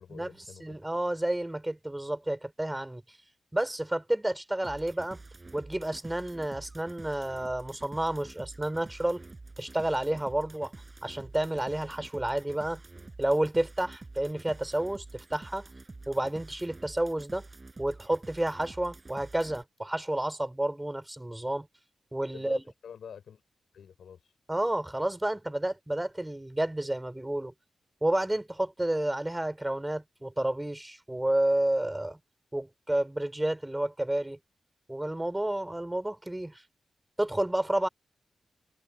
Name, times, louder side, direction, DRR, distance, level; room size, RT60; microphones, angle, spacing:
voice 1, 0.0-0.8 22.3-23.4 23.7-24.3, left 7 dB, 80° left, 5.0 m, -47 dB
voice 2, 0.6-3.0 3.5-5.2 5.5-9.2 9.6-10.7 11.0-12.8 13.2-15.6 16.1-17.5 17.8-21.7 22.1-22.6 24.5-27.5 28.0-32.2 32.5-34.4 34.9-36.6 37.2-37.9, right 1 dB, 15° right, 3.6 m, -30 dB
sound 1, 4.6-19.6, right 3 dB, 35° right, 5.0 m, -48 dB
supercardioid pair, 45°, 0 cm